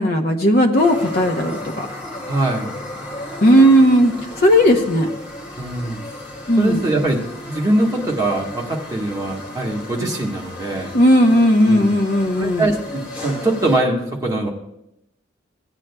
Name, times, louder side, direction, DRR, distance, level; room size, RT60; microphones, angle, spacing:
voice 1, 0.0-1.9 3.4-5.1 6.5-6.8 10.9-12.7, equal, 50° left, 3 dB, 0.7 m, -15 dB
sound 1, 0.8-13.8, left 1 dB, 30° left, 2.1 m, -34 dB
voice 2, 2.3-2.7 5.6-6.0 6.6-10.9 11.7-11.9 12.4-14.5, right 1 dB, 20° right, -2 dB, 1.4 m, -22 dB
16.5 x 8.7 x 2.2 m, 0.85 s
head